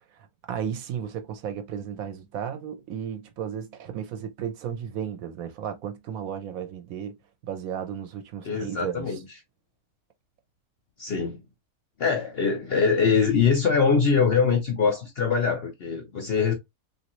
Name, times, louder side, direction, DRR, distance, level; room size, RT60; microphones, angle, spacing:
voice 1, 0.1-7.2 7.4-9.2, right 8 dB, 70° right, 0.9 m, -34 dB
voice 2, 8.4-9.2 11.0-11.4 12.0-16.5, left 5 dB, 55° left, 0.7 m, -23 dB
3.0 x 2.6 x 2.9 m
omnidirectional pair, 1.6 m